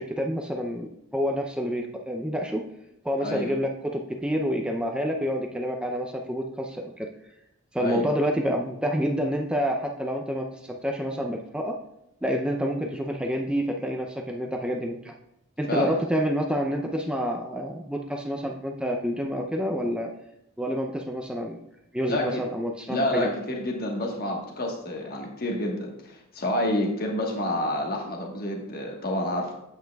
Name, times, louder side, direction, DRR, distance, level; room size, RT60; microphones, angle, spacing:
voice 1, 0.0-2.6 3.0-7.1 7.7-11.8 12.2-15.1 15.6-20.1 20.6-21.6 21.9-23.3, equal, 5° right, 2 dB, 0.5 m, -28 dB
voice 2, 3.2-3.5 7.8-8.1 15.7-16.0 22.1-22.4 22.9-29.5, left 1 dB, 45° left, 1 dB, 1.3 m, -28 dB
8.9 x 8.1 x 2.3 m, 0.84 s
head